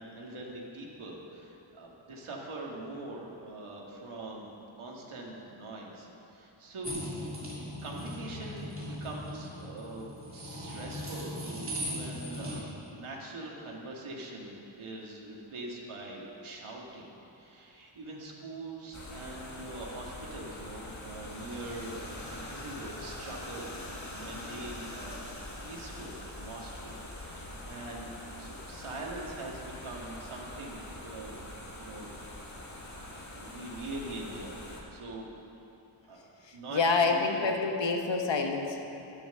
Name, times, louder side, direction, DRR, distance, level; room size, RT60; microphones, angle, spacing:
voice 1, 0.0-7.0 7.4-7.5 7.8-11.3 11.9-17.1 17.3-22.0 22.3-23.7 24.1-25.2 25.6-28.1 28.4-31.4 31.8-32.1 32.4-32.6 33.3-34.6 34.9-35.3 36.1-36.2 36.5-37.5, right 2 dB, 85° right, -3 dB, 2.1 m, -43 dB
sound 1, 6.8-12.6, equal, 25° right, 2.8 m, -39 dB
sound 2, 18.9-34.8, left 1 dB, 35° left, 1.9 m, -43 dB
voice 2, 36.4-38.8, left 4 dB, 65° left, 3 dB, 1.4 m, -28 dB
12.0 x 10.0 x 6.6 m, 2.9 s
wide cardioid pair, 120°, 48 cm